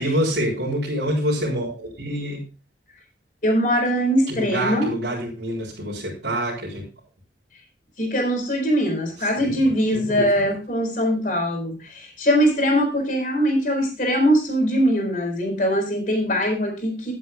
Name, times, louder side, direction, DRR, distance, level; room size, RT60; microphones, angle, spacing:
voice 1, 0.0-2.4 4.3-6.8 9.2-10.5, equal, 65° right, -6 dB, 4.1 m, -27 dB
voice 2, 3.4-4.9 8.0-17.1, equal, 45° left, 1 dB, 4.4 m, -22 dB
17.0 x 8.2 x 2.4 m, 0.33 s
head